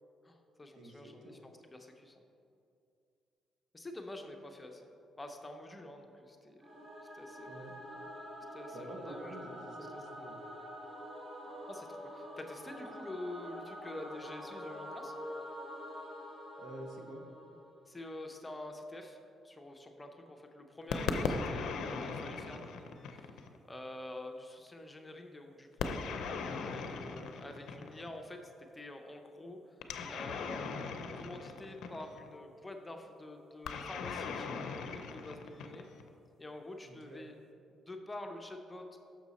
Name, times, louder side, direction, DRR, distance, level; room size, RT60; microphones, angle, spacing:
voice 1, 0.2-2.2 3.7-4.9 5.2-6.6 7.1-7.5 8.5-9.9 11.7-15.1 17.9-19.2 19.4-22.8 23.1-23.4 23.7-30.7 31.2-35.9 36.4-37.3 37.7-39.0, left 1 dB, 15° left, 4 dB, 0.6 m, -47 dB
voice 2, 0.7-1.4 7.5-7.7 8.7-10.4 16.6-17.2 36.8-37.2, right 1 dB, 65° right, 2 dB, 1.0 m, -48 dB
Singing / Musical instrument, 6.6-17.9, equal, 40° right, 1.4 m, -46 dB
sound 1, 20.9-23.6 25.8-28.2 29.8-32.3 33.7-36.1, left 5 dB, 75° left, 0.5 m, -38 dB
6.4 x 6.0 x 4.1 m, 2.6 s
cardioid pair, 90°, 0 cm